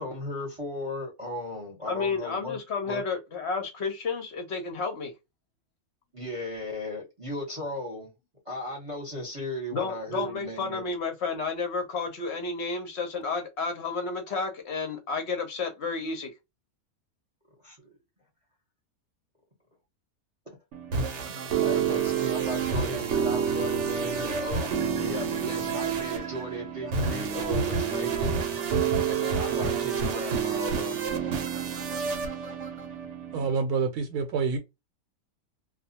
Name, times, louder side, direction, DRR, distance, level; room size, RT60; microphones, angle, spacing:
voice 1, 0.0-2.6 2.8-3.0 6.1-8.1 8.5-10.8 17.6-17.9 21.6-28.4 29.0-31.0, left 1 dB, 25° right, 0.8 m, -36 dB
voice 2, 1.8-5.1 9.7-16.3, left 4 dB, 60° left, 0.8 m, -31 dB
sound 1, 20.7-33.5, right 6 dB, 60° right, 0.9 m, -28 dB
voice 3, 33.3-34.6, right 5 dB, 85° right, 1.1 m, -27 dB
2.3 x 2.3 x 2.7 m
omnidirectional pair, 1.6 m